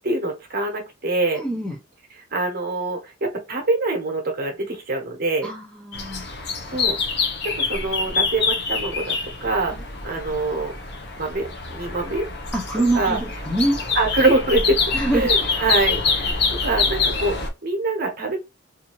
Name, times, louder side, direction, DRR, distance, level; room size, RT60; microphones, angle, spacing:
voice 1, 0.0-1.4 2.2-5.5 6.7-7.0 7.4-9.2 9.4-9.8 10.0-10.7 11.2-12.3 12.9-13.2 14.0-14.8 15.1-18.4, right 2 dB, 45° right, 0.9 m, -24 dB
voice 2, 1.3-1.7 5.4-6.3 12.5-13.8 14.9-15.5, right 1 dB, 5° left, 0.5 m, -24 dB
sound 1, 5.9-17.5, left 4 dB, 55° left, 0.6 m, -25 dB
2.6 x 2.6 x 2.9 m
head